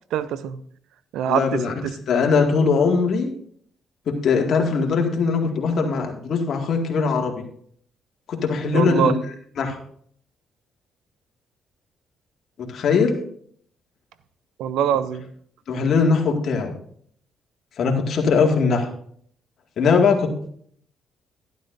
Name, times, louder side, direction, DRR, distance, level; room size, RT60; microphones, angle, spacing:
voice 1, 0.1-0.6 1.1-1.9 8.7-9.1 14.6-15.3, right 9 dB, 85° right, 14 dB, 0.6 m, -23 dB
voice 2, 1.3-1.7 2.1-3.3 4.1-7.4 8.3-9.2 9.6-9.8 12.6-13.2 15.7-16.7 17.8-18.9 19.8-20.5, left 5 dB, 60° left, 2 dB, 2.0 m, -20 dB
12.0 x 11.5 x 2.6 m, 0.62 s
cardioid pair, 90°, 0 cm